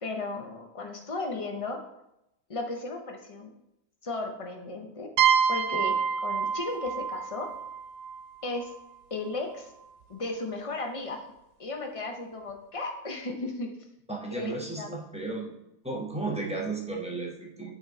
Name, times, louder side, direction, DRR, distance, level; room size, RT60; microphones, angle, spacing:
voice 1, 0.0-1.8 2.5-3.5 4.0-5.1 5.5-7.5 8.4-8.7 9.1-9.7 10.1-11.2 11.6-13.7 14.3-14.9, left 2 dB, 65° left, 3 dB, 0.3 m, -35 dB
sound 1, 5.2-8.8, right 7 dB, 80° right, 1.1 m, -27 dB
voice 2, 14.1-15.5 15.8-17.7, right 3 dB, 5° right, -2 dB, 0.9 m, -34 dB
8.0 x 3.6 x 4.7 m, 0.85 s
omnidirectional pair, 1.7 m